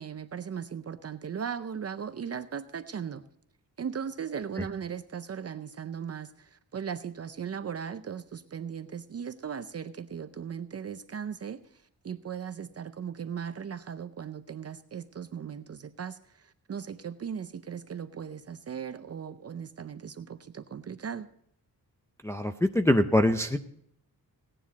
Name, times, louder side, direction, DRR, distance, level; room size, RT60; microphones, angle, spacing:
voice 1, 0.0-3.2 3.8-11.6 12.0-16.2 16.7-21.3, right 7 dB, 45° right, 11 dB, 0.5 m, -37 dB
voice 2, 22.2-23.6, left 1 dB, 10° left, 5 dB, 0.5 m, -24 dB
17.0 x 9.9 x 4.1 m, 0.68 s
wide cardioid pair, 175°, 36 cm